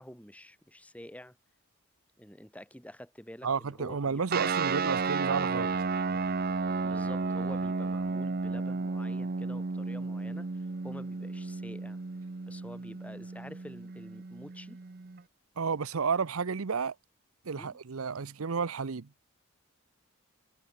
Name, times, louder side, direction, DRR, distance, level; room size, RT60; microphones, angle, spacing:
voice 1, 0.0-1.4 2.2-4.5 5.7-5.8 6.8-12.0 12.5-14.8 17.5-17.8, equal, 5° left, 4.0 m, -48 dB
voice 2, 3.4-5.7 15.6-16.9 17.4-19.1, right 5 dB, 80° right, 0.7 m, -31 dB
sound 1, 4.3-15.2, right 4 dB, 45° right, 0.7 m, -33 dB
head